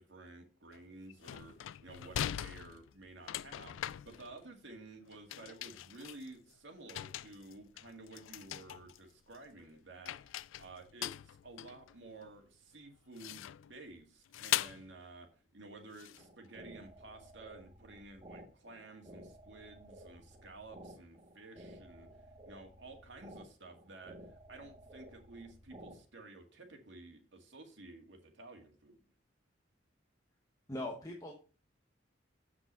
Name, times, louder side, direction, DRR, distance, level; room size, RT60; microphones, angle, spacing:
voice 1, 0.0-22.1 22.4-29.0, right 2 dB, 65° right, 3 dB, 2.1 m, -53 dB
sound 1, 0.7-0.8 1.1-4.7 5.1-6.5 6.9-9.0 9.3-9.8 10.0-12.4 13.2-13.7 14.3-14.9 15.9-16.2, left 12 dB, 85° left, 0.3 m, -41 dB
sound 2, 16.2-26.0, right 1 dB, 25° right, 1.1 m, -54 dB
voice 2, 30.7-31.3, left 1 dB, 20° left, 0 dB, 1.1 m, -40 dB
7.8 x 6.1 x 5.4 m, 0.37 s
head